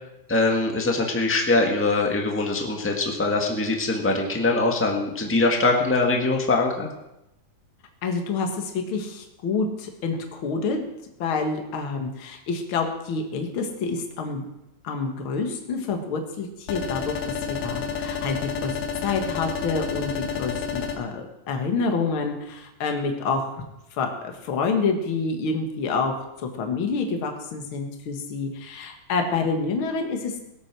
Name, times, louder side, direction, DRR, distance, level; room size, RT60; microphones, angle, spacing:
voice 1, 0.3-6.9, left 3 dB, 10° left, 1 dB, 0.8 m, -22 dB
voice 2, 8.0-10.8 11.2-14.4 14.8-18.7 19.0-23.5 23.9-26.1 26.4-30.3, left 4 dB, 45° left, 4 dB, 2.1 m, -27 dB
sound 1, 16.7-21.0, left 6 dB, 85° left, 3.0 m, -30 dB
18.5 x 8.3 x 6.2 m, 0.88 s
omnidirectional pair, 3.7 m